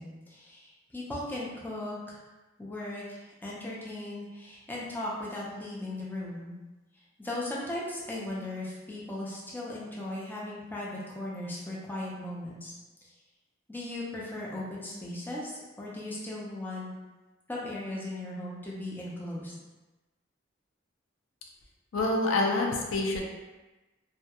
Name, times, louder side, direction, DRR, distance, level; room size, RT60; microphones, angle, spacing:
voice 1, 0.0-2.2 2.6-6.5 7.2-12.7 13.0-13.1 13.7-16.9 17.5-19.5, left 1 dB, 10° left, -6 dB, 0.4 m, -37 dB
voice 2, 21.9-23.2, left 2 dB, 80° left, 0 dB, 0.4 m, -26 dB
2.3 x 2.2 x 2.8 m, 1.1 s
head